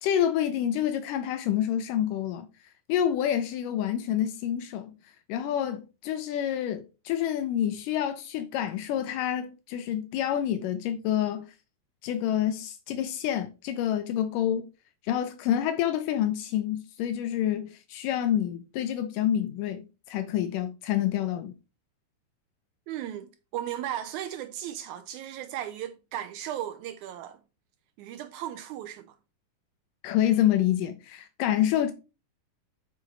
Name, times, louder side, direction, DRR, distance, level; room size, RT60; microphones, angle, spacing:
voice 1, 0.0-2.5 2.9-4.9 5.3-11.5 12.0-14.7 15.0-21.5 30.0-31.9, left 10 dB, 85° left, 2.2 m, -28 dB
voice 2, 22.9-27.4 28.0-29.2, right 11 dB, 85° right, 1.7 m, -36 dB
7.6 x 5.2 x 4.4 m
omnidirectional pair, 3.9 m